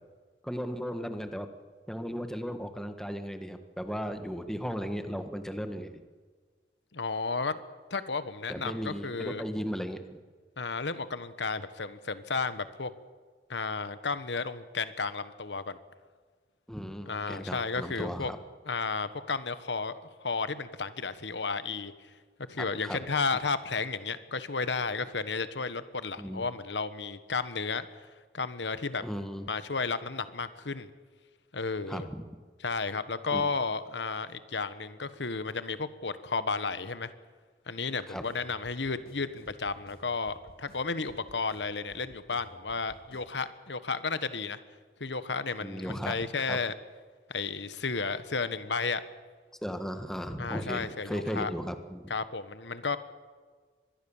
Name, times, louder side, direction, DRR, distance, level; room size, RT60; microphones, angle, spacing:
voice 1, 0.4-1.5 1.9-6.0 8.5-10.0 16.7-18.4 22.6-23.0 26.2-26.4 29.0-29.5 31.9-32.2 33.3-33.5 38.1-38.2 45.6-46.2 46.5-46.6 49.6-52.1, equal, 5° left, 7 dB, 1.5 m, -36 dB
voice 2, 6.9-7.6 7.9-9.4 10.6-12.9 13.5-15.8 17.1-18.3 18.7-21.9 22.5-27.9 28.3-29.0 29.5-30.9 31.5-32.1 32.6-37.1 37.7-44.6 45.0-46.7 47.3-49.0 50.4-51.5 52.1-53.0, left 4 dB, 90° left, 13 dB, 1.3 m, -33 dB
sound 1, 38.2-43.3, left 1 dB, 55° left, 2.8 m, -56 dB
24.5 x 21.0 x 7.3 m, 1.5 s
head